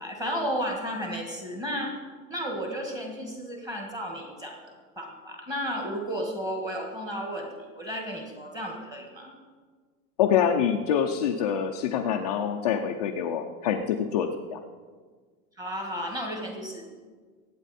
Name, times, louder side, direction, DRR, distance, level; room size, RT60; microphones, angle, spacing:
voice 1, 0.0-1.9 2.3-9.3 15.6-16.9, equal, 10° right, 1 dB, 1.6 m, -33 dB
voice 2, 10.2-14.6, left 8 dB, 30° left, 2 dB, 0.4 m, -26 dB
23.0 x 9.0 x 4.2 m, 1.5 s
supercardioid pair, 170°, 45 cm